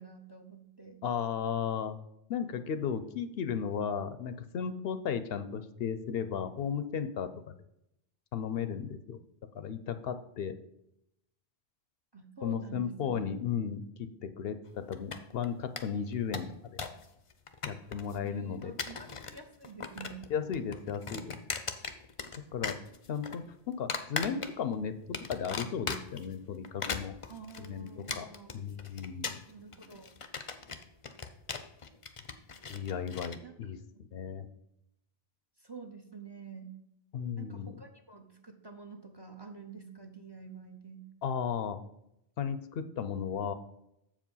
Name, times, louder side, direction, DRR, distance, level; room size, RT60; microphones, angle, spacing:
voice 1, 0.0-1.0 12.1-13.4 18.2-20.3 27.3-28.6 29.5-30.1 33.4-33.5 33.9-34.0 35.6-36.7 37.3-41.0, right 5 dB, 25° right, 5 dB, 0.7 m, -48 dB
voice 2, 1.0-2.0 2.3-7.6 8.3-9.2 9.5-10.6 12.4-16.5 17.7-18.8 20.3-21.4 22.5-22.8 23.1-27.1 27.6-28.3 28.5-29.4 32.7-33.8 34.1-34.5 37.1-37.8 41.2-41.8 42.4-43.5, left 7 dB, 70° left, 11 dB, 0.8 m, -35 dB
sound 1, 14.9-15.5 15.8-15.9 16.1-17.0 17.3-18.1 18.6-19.4 19.6-20.3 20.5-22.4 22.6-23.4 23.9-24.7 25.1-26.2 26.6-33.4, left 5 dB, 40° left, 0.6 m, -38 dB
7.3 x 5.0 x 5.4 m, 0.80 s
omnidirectional pair, 1.1 m